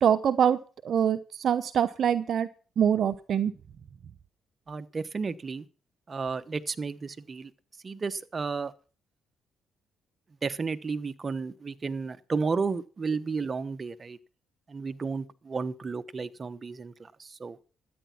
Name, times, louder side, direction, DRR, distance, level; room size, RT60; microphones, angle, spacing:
voice 1, 0.0-2.5 2.8-3.5, right 8 dB, 60° right, 0.8 m, -24 dB
voice 2, 4.7-5.6 6.1-7.5 7.8-8.7 10.4-14.2 14.7-17.6, right 4 dB, 35° right, 1.1 m, -32 dB
13.5 x 9.5 x 5.9 m
cardioid pair, 90°, 0 cm